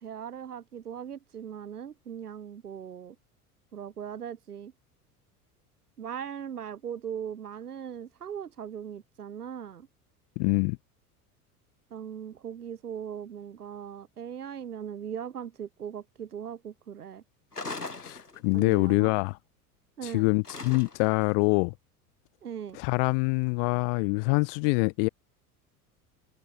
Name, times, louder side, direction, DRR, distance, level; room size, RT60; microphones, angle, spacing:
voice 1, 0.0-3.2 3.7-4.7 6.0-9.9 11.9-17.2 18.5-19.1 20.0-20.3 22.4-22.8, right 8 dB, 80° right, 0.8 m, -39 dB
voice 2, 10.4-10.8 18.0-19.4 20.0-21.7 22.7-25.1, left 38 dB, 40° left, 0.5 m, -25 dB
sound 1, 17.5-18.7 20.4-21.2, left 3 dB, 90° left, 2.1 m, -39 dB
figure-of-eight pair, 75°, 45 cm